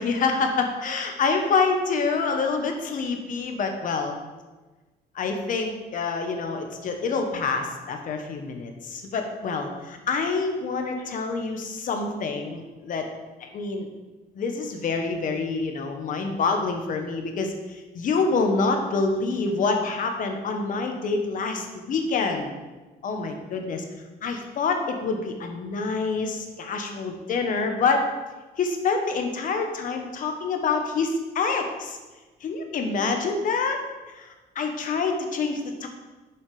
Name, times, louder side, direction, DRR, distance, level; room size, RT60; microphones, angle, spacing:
voice 1, 0.0-4.2 5.1-13.1 13.4-13.9 14.4-22.5 23.0-23.8 24.2-28.0 28.6-32.0 32.4-33.8 34.1-34.3 34.5-35.9, left 4 dB, 50° left, 4 dB, 1.3 m, -26 dB
7.2 x 5.8 x 5.0 m, 1.2 s
cardioid pair, 110°, 17 cm